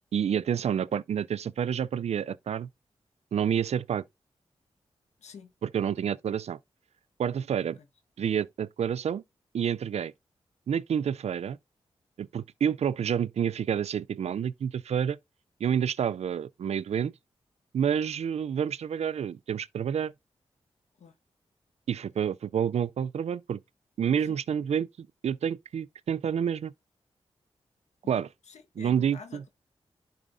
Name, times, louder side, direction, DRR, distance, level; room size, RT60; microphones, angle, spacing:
voice 1, 0.1-2.7 3.3-4.0 5.6-6.6 7.2-7.8 8.2-9.2 9.5-10.1 10.7-11.6 12.2-15.2 15.6-17.1 17.7-20.1 21.9-23.6 24.0-26.7 28.1-28.3 28.8-29.4, right 8 dB, 70° right, 0.4 m, -29 dB
voice 2, 5.2-5.5 21.0-21.1 24.3-24.4 28.0-29.5, left 5 dB, 80° left, 1.4 m, -48 dB
11.0 x 5.0 x 2.6 m
cardioid pair, 45°, 11 cm